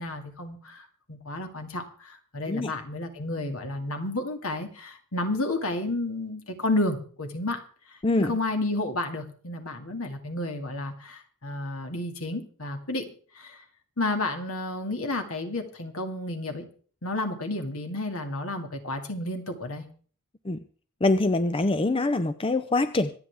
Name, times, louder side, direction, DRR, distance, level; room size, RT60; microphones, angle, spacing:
voice 1, 0.0-7.6 8.2-13.1 13.4-13.6 14.0-16.7 17.0-19.9, left 2 dB, 70° left, 5 dB, 2.3 m, -31 dB
voice 2, 21.0-23.1, left 2 dB, 25° left, 11 dB, 0.5 m, -24 dB
25.5 x 8.7 x 3.5 m, 0.43 s
head